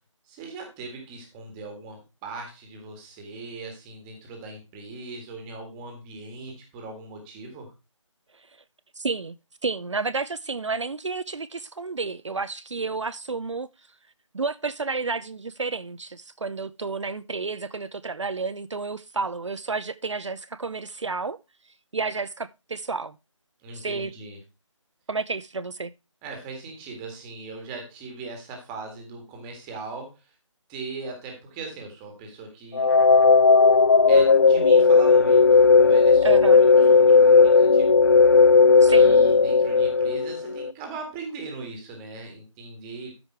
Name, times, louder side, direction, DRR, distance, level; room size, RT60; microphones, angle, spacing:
voice 1, 0.3-7.7 23.6-24.4 26.2-30.2 30.7-32.9 34.1-37.9 38.9-43.2, right 3 dB, 10° right, 1.8 m, -39 dB
voice 2, 9.0-9.3 9.6-13.7 14.3-21.4 21.9-23.2 23.7-24.1 25.1-25.9 36.2-36.6 38.8-39.1, right 4 dB, 65° right, 0.7 m, -31 dB
sound 1, 32.7-40.7, left 4 dB, 40° left, 0.6 m, -16 dB
13.0 x 5.3 x 4.5 m
figure-of-eight pair, 165°, 17 cm